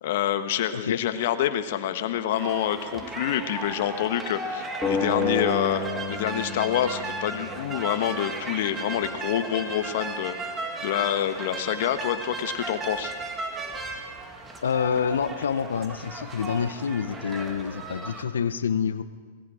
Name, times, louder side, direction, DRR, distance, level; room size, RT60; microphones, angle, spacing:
voice 1, 0.0-10.6 10.8-13.1, left 10 dB, 65° left, 10 dB, 1.2 m, -27 dB
sound 1, 2.4-18.2, right 2 dB, 15° right, 1.9 m, -35 dB
sound 2, 4.8-8.0, left 4 dB, 10° left, 2.7 m, -30 dB
voice 2, 14.6-19.0, left 6 dB, 85° left, 13 dB, 0.8 m, -27 dB
19.5 x 15.0 x 5.0 m, 1.5 s
hypercardioid pair, 120°, 0 cm